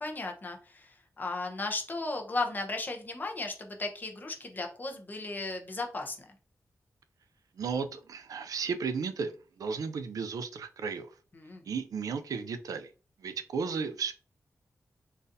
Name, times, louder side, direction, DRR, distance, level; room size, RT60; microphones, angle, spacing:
voice 1, 0.0-6.2 11.3-11.6, left 2 dB, 30° left, 0.7 m, -35 dB
voice 2, 7.6-11.1 11.6-12.9 13.2-14.1, right 5 dB, 85° right, 0.4 m, -34 dB
3.9 x 2.5 x 2.6 m
wide cardioid pair, 145°, 6 cm